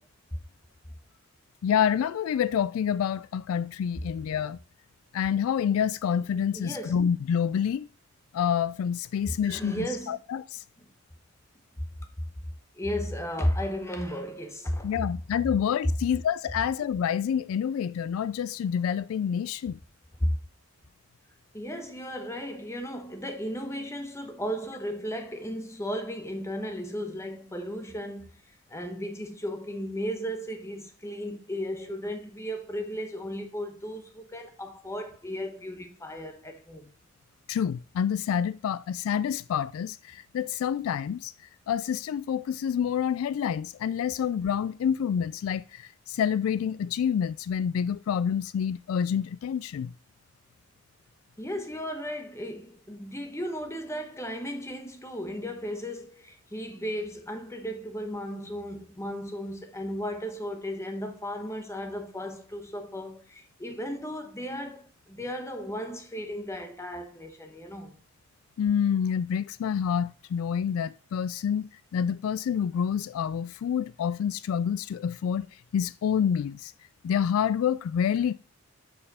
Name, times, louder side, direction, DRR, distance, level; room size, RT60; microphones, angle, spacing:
voice 1, 1.6-4.6 5.1-7.9 8.3-10.6 14.8-19.8 37.5-41.3 41.7-49.9 68.6-75.5 75.7-76.7 77.0-78.3, left 8 dB, 80° left, 0.3 m, -28 dB
voice 2, 6.5-7.0 9.4-10.2 11.8-11.9 12.7-15.1 20.2-20.4 21.5-28.4 28.7-36.9 51.4-68.0, equal, 15° left, 1.1 m, -35 dB
6.8 x 5.3 x 4.2 m
head